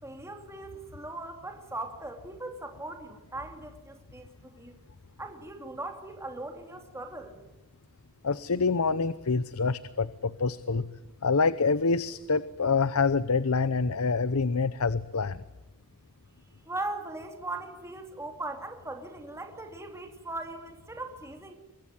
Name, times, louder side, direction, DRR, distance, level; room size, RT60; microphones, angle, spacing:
voice 1, 0.0-4.7 5.2-7.4 16.6-21.5, right 2 dB, 15° right, 5 dB, 2.8 m, -39 dB
voice 2, 8.2-10.9 11.2-15.4, left 4 dB, 75° left, 16 dB, 0.8 m, -26 dB
24.0 x 22.5 x 9.7 m, 1.0 s
head